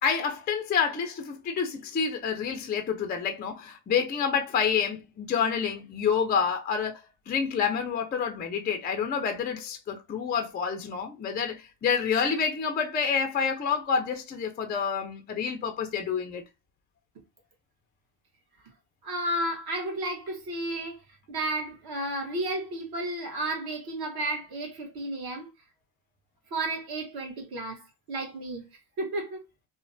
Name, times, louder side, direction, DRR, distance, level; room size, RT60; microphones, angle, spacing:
voice 1, 0.0-16.4, left 6 dB, 20° left, 0.4 m, -28 dB
voice 2, 19.0-21.0 21.3-25.5 26.5-28.7 29.0-29.4, right 1 dB, 50° right, 1.2 m, -32 dB
3.1 x 2.1 x 2.6 m
cardioid pair, 120°, 47 cm